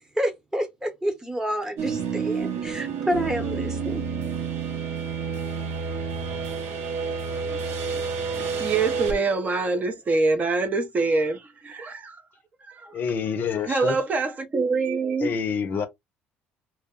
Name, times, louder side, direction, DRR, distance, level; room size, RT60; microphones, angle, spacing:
voice 1, 0.2-4.0, equal, 15° right, 0.9 m, -29 dB
sound 1, 1.8-9.1, right 5 dB, 70° right, 0.9 m, -29 dB
voice 2, 8.4-12.2 12.6-12.9 13.7-15.3, right 3 dB, 35° right, 0.5 m, -25 dB
voice 3, 12.9-14.0 15.2-15.9, left 6 dB, 45° left, 0.5 m, -27 dB
2.2 x 2.1 x 3.4 m
supercardioid pair, 95°, 4 cm